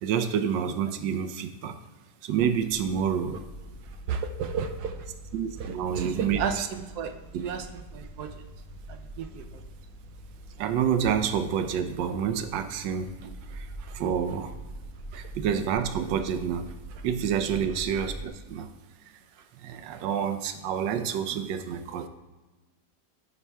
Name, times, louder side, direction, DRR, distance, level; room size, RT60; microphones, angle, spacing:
voice 1, 0.0-1.7 2.2-3.4 5.3-6.7 7.3-7.4 10.6-13.7 13.9-14.5 15.1-16.7 17.0-18.7 19.6-22.1, right 8 dB, 90° right, 9 dB, 1.3 m, -28 dB
sound 1, 2.4-18.3, right 1 dB, 10° left, 1.0 m, -44 dB
voice 2, 4.1-5.1 5.6-8.3 8.9-9.4 13.8-13.9 15.1-15.2 19.9-20.0, right 6 dB, 70° right, 6 dB, 1.0 m, -33 dB
9.6 x 6.0 x 2.2 m, 1.2 s
omnidirectional pair, 1.9 m